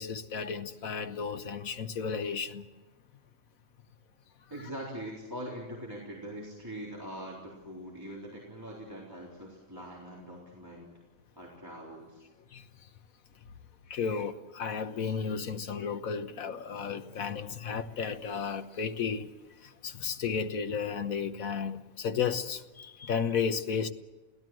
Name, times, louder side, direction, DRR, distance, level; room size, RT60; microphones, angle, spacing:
voice 1, 0.0-2.6 12.5-12.7 13.9-19.3 19.6-23.9, left 6 dB, 90° left, 1.6 m, -33 dB
voice 2, 4.5-10.9 11.4-12.2, equal, 15° right, 4.0 m, -42 dB
28.5 x 17.0 x 7.8 m
omnidirectional pair, 1.4 m